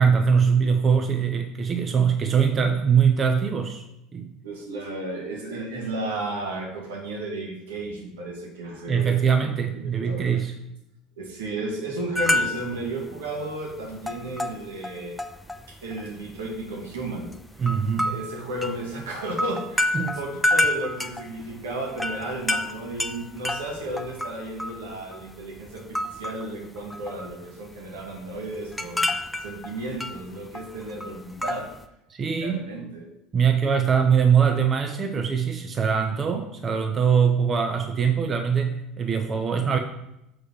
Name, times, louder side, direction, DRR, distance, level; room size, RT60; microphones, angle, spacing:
voice 1, 0.0-3.8 4.1-4.3 8.9-10.5 17.6-18.1 19.9-20.2 32.1-32.6 33.3-39.8, right 6 dB, 35° right, 5 dB, 0.9 m, -22 dB
voice 2, 4.4-9.2 9.7-10.3 11.2-15.2 15.7-17.6 18.0-25.8 26.1-29.1 29.4-31.7 32.4-33.1, right 2 dB, 80° right, -1 dB, 2.1 m, -33 dB
sound 1, 12.2-12.9 13.2-13.4 13.7-15.6 15.9-16.7 17.3-25.3 25.6-26.5 26.8-27.4 27.7-31.8, left 1 dB, 5° left, 0.8 m, -28 dB
6.6 x 5.0 x 5.8 m, 0.83 s
hypercardioid pair, 75°, 0 cm